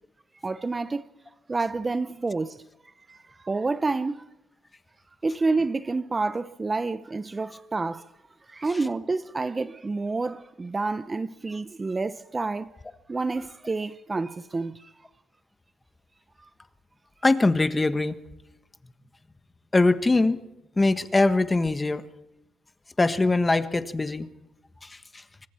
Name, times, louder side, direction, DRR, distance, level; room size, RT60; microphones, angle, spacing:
voice 1, 0.4-1.0 1.5-2.6 3.1-4.3 5.2-8.0 8.5-12.8 13.1-14.9 16.4-16.5, right 3 dB, 25° right, 0.8 m, -29 dB
voice 2, 17.2-18.2 19.7-20.4 20.8-22.0 23.0-24.3, left 2 dB, 20° left, 1.5 m, -22 dB
27.5 x 24.5 x 4.5 m
cardioid pair, 90°, 0 cm